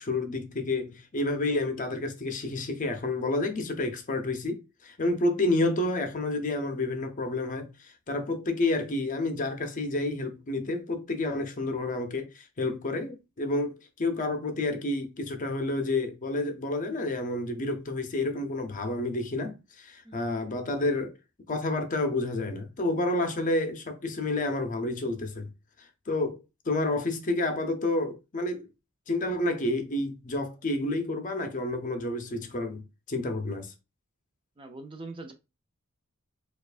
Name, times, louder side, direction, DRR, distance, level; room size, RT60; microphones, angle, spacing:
voice 1, 0.0-21.1 21.5-25.5 25.8-26.4 26.7-28.7 29.1-32.8 33.1-33.7, left 2 dB, 40° left, 0.6 m, -30 dB
voice 2, 34.6-35.3, right 2 dB, 25° right, 0.5 m, -42 dB
4.4 x 2.4 x 2.4 m
head